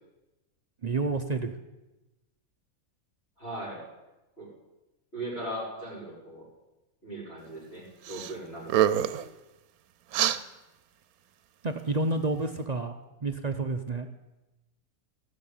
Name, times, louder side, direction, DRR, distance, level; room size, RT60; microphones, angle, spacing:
voice 1, 0.8-1.6 11.6-12.9 13.2-14.1, right 3 dB, 50° right, 7 dB, 0.5 m, -29 dB
voice 2, 3.4-3.8 4.4-4.5 5.1-6.4 7.0-8.9, right 1 dB, 45° left, -6 dB, 5.6 m, -38 dB
sound 1, 8.1-8.3 8.6-9.3 10.1-10.4, right 11 dB, 85° right, 1.1 m, -25 dB
16.5 x 6.4 x 8.8 m, 1.0 s
omnidirectional pair, 1.5 m